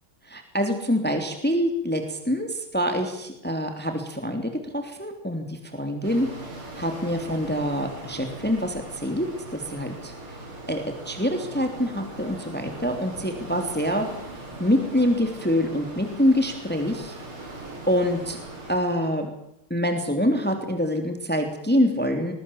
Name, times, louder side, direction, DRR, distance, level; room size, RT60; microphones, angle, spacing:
voice 1, 0.3-6.3 6.7-10.4 10.7-14.1 14.6-17.1 17.4-18.4 18.7-19.3 19.7-22.3, equal, 5° left, 5 dB, 3.0 m, -25 dB
sound 1, 6.0-18.7, right 2 dB, 90° right, 6.7 m, -40 dB
22.5 x 21.0 x 7.2 m, 0.76 s
omnidirectional pair, 2.3 m